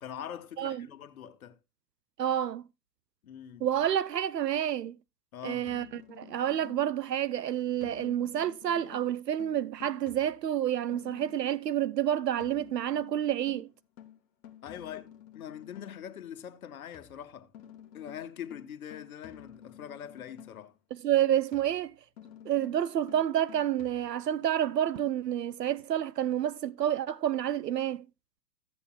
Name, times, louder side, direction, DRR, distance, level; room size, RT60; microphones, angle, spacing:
voice 1, 0.0-1.6 3.2-3.7 5.3-5.7 14.6-17.5 17.9-20.8, left 9 dB, 60° left, 1.1 m, -43 dB
voice 2, 2.2-2.6 3.6-5.0 5.4-13.7 20.9-21.9 22.5-28.0, right 10 dB, 75° right, 0.5 m, -29 dB
sound 1, 5.6-7.1 7.8-11.6 12.4-16.1 16.9-20.8 21.5-24.5 25.0-25.1, left 10 dB, 30° left, 1.1 m, -52 dB
14.5 x 8.3 x 2.3 m
figure-of-eight pair, 105°, 49 cm